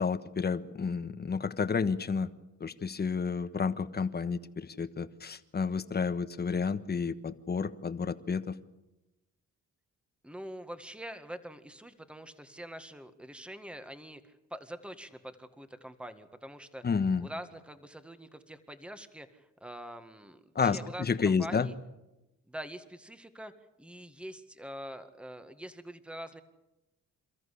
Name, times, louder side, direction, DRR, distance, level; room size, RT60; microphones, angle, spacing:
voice 1, 0.0-2.3 2.6-8.6 16.8-17.3 20.5-21.7, left 5 dB, 35° left, 12 dB, 1.3 m, -30 dB
voice 2, 10.2-16.8 17.2-21.7 22.5-23.5 23.8-26.4, equal, 5° right, 9 dB, 1.8 m, -44 dB
28.5 x 14.0 x 8.4 m, 0.98 s
cardioid pair, 90°, 30 cm